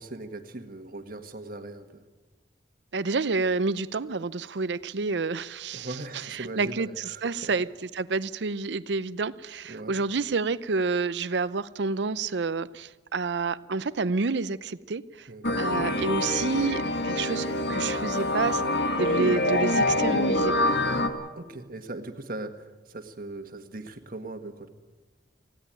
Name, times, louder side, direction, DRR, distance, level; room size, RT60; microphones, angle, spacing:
voice 1, 0.0-2.0 5.7-7.5 9.7-10.0 15.3-15.6 21.3-24.7, right 2 dB, 50° right, 7 dB, 1.7 m, -39 dB
voice 2, 2.9-5.9 6.3-15.3 15.6-18.6 19.0-20.5, right 4 dB, 75° right, 16 dB, 0.6 m, -29 dB
sound 1, 15.4-21.1, left 1 dB, 70° left, 1.8 m, -25 dB
19.5 x 16.0 x 9.0 m, 1.3 s
head